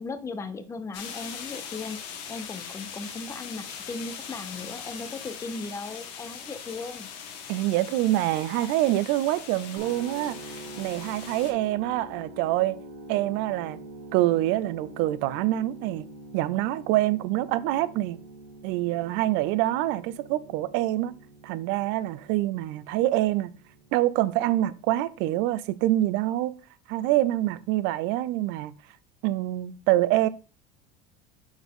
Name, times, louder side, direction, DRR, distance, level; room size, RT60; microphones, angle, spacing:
voice 1, 0.0-7.1, left 3 dB, 15° left, 0.5 m, -37 dB
sound 1, 0.9-11.5, left 7 dB, 75° left, 1.5 m, -41 dB
voice 2, 7.5-12.8 13.1-13.8 14.1-16.1 16.3-18.2 18.6-21.2 21.4-23.5 23.9-26.5 26.9-28.7 29.2-30.3, right 15 dB, 60° right, 0.5 m, -26 dB
sound 2, 9.8-25.7, right 1 dB, 85° right, 1.7 m, -46 dB
6.1 x 5.6 x 3.7 m
cardioid pair, 150°, 21 cm